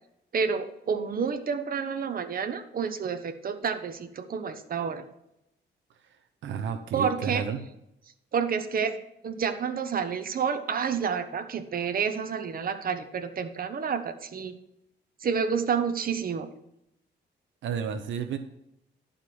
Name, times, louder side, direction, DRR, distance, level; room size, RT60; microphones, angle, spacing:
voice 1, 0.3-5.1 6.9-7.5 8.3-9.0 9.2-14.6 15.2-16.5, right 6 dB, 50° right, 8 dB, 1.0 m, -29 dB
voice 2, 6.4-7.6 17.6-18.4, right 7 dB, 80° right, 8 dB, 0.8 m, -31 dB
11.5 x 5.2 x 6.1 m, 0.82 s
cardioid pair, 105°, 19 cm